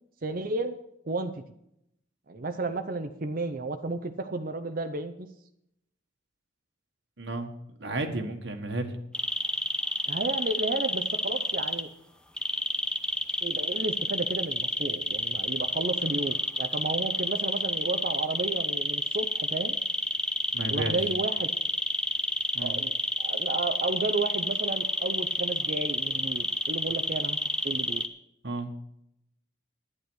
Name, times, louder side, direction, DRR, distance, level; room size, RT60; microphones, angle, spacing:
voice 1, 0.2-0.8 1.1-1.4 2.3-5.3 10.1-11.9 13.4-19.8 20.7-21.5 22.6-27.4 27.6-28.0, right 3 dB, 50° right, 7 dB, 0.7 m, -32 dB
voice 2, 7.2-7.5 7.8-8.9 20.5-21.0 22.5-22.8 28.4-28.7, right 2 dB, 65° right, 3 dB, 1.6 m, -32 dB
sound 1, 9.1-11.8 12.4-28.1, left 1 dB, 5° left, 0.8 m, -29 dB
12.0 x 9.9 x 6.3 m, 0.77 s
head